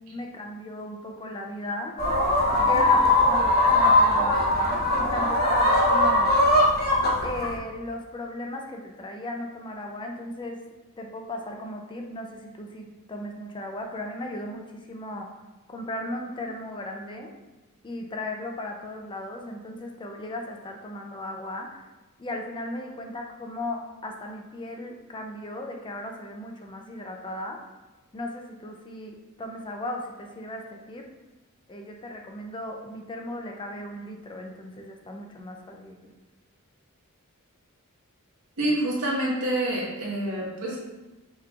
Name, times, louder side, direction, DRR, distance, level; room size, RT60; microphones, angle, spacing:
voice 1, 0.0-2.0 2.6-6.4 7.2-10.6 11.0-15.3 15.7-17.3 17.8-21.8 22.2-27.6 28.1-31.1 31.7-36.0, left 1 dB, 20° left, 2 dB, 0.4 m, -36 dB
sound 1, 2.0-7.6, left 1 dB, 45° left, 0.8 m, -20 dB
voice 2, 38.6-40.8, right 1 dB, 85° right, -4 dB, 1.4 m, -27 dB
5.7 x 3.1 x 2.4 m, 1.1 s
head